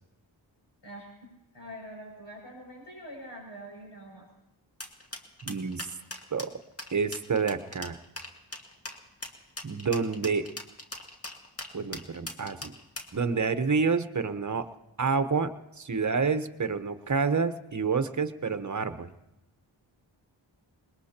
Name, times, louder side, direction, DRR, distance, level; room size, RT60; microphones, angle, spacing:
voice 1, 0.8-4.3, equal, 65° left, -2 dB, 6.9 m, -45 dB
sound 1, 4.8-13.2, left 1 dB, 30° left, 2.0 m, -40 dB
voice 2, 5.4-5.9 6.3-6.6 6.9-8.0 9.6-10.5 11.7-12.7 13.1-14.7 15.0-19.1, right 5 dB, 35° right, 11 dB, 1.1 m, -28 dB
21.0 x 20.5 x 2.9 m, 0.90 s
cardioid pair, 40°, 48 cm